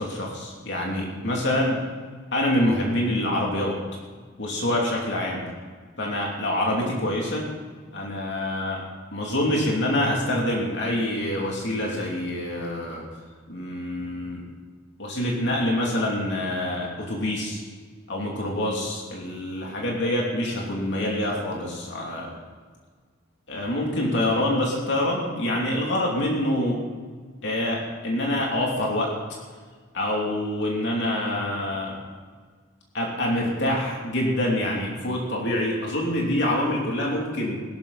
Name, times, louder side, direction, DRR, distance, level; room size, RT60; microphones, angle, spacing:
voice 1, 0.0-1.8 2.3-3.8 4.4-5.4 6.0-7.5 7.9-8.8 9.1-13.1 13.5-14.4 15.0-17.6 18.1-22.3 23.5-26.8 27.4-29.2 29.9-32.0 32.9-37.6, left 1 dB, 65° left, -2 dB, 3.0 m, -26 dB
16.5 x 13.0 x 4.2 m, 1.5 s
head